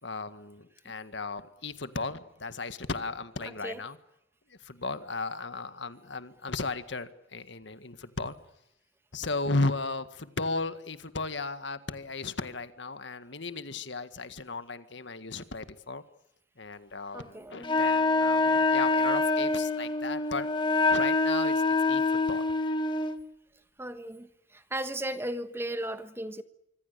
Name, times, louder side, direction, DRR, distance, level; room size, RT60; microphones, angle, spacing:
voice 1, 0.0-4.0 4.5-8.4 9.1-16.0 16.6-20.5 20.9-22.5, left 3 dB, 70° left, 1.8 m, -35 dB
voice 2, 17.1-17.8 23.8-24.3 24.7-26.4, right 1 dB, 15° right, 1.3 m, -35 dB
Wind instrument woodwind instrument, 17.6-23.2, left 3 dB, 25° left, 1.6 m, -25 dB
25.5 x 25.0 x 6.9 m
head